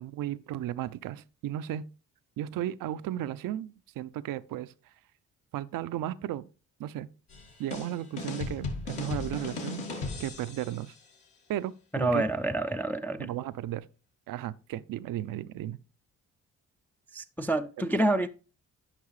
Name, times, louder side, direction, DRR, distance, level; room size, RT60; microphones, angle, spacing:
voice 1, 0.0-1.8 2.4-4.7 5.5-6.5 6.8-7.1 7.6-10.9 11.5-12.2 13.2-13.9 14.3-15.8, right 12 dB, 55° right, 0.5 m, -35 dB
sound 1, 7.3-10.8, left 2 dB, 70° left, 1.8 m, -36 dB
voice 2, 11.9-13.3 17.1-18.3, right 1 dB, 5° left, 0.3 m, -28 dB
9.7 x 5.4 x 3.2 m
hypercardioid pair, 45°, 41 cm